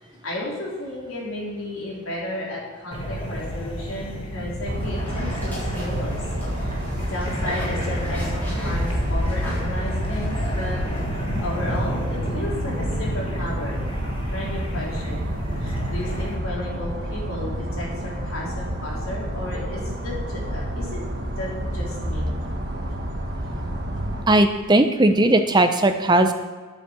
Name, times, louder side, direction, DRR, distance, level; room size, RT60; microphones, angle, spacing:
voice 1, 0.0-6.2 6.5-10.8 11.4-13.8 14.3-15.3 15.6-21.0 21.4-22.3, left 1 dB, 70° left, -4 dB, 4.0 m, -33 dB
sound 1, 2.9-16.4, equal, 25° left, 1.7 m, -30 dB
sound 2, 4.6-24.2, right 1 dB, 45° right, 1.4 m, -30 dB
sound 3, 5.1-11.4, left 1 dB, 10° left, 3.9 m, -31 dB
voice 2, 24.3-26.3, right 1 dB, 20° right, 7 dB, 0.7 m, -17 dB
9.5 x 8.3 x 7.1 m, 1.5 s
head